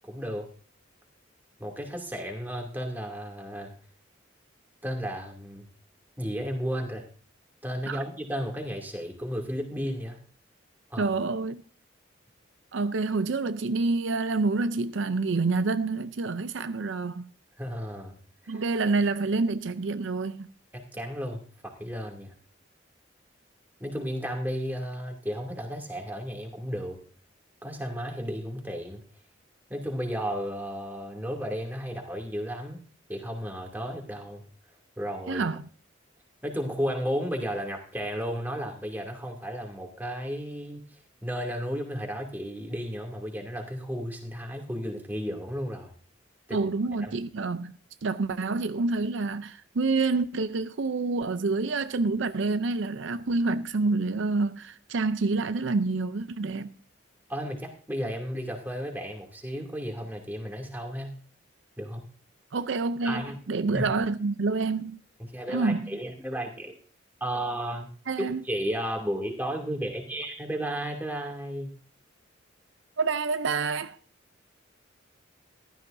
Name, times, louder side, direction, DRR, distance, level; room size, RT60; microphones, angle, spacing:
voice 1, 0.0-0.5 1.6-3.7 4.8-5.6 6.2-7.1 7.6-10.2 10.9-11.1 17.6-18.2 18.4-18.6 20.7-22.3 23.8-27.0 27.6-29.0 29.7-32.8 33.1-34.4 35.0-35.5 36.4-40.8 41.2-45.9 46.5-46.6 47.0-47.1 57.3-61.1 61.8-62.0 63.0-63.4 63.7-63.9 65.3-66.8 67.2-67.9 68.2-71.7, equal, 10° right, 2.5 m, -33 dB
voice 2, 11.0-11.6 12.7-17.3 18.5-20.5 35.3-35.7 46.5-56.7 62.5-63.2 63.5-65.0 65.5-65.9 68.1-68.4 73.0-74.0, right 3 dB, 70° right, 0.5 m, -27 dB
15.0 x 12.5 x 2.6 m
head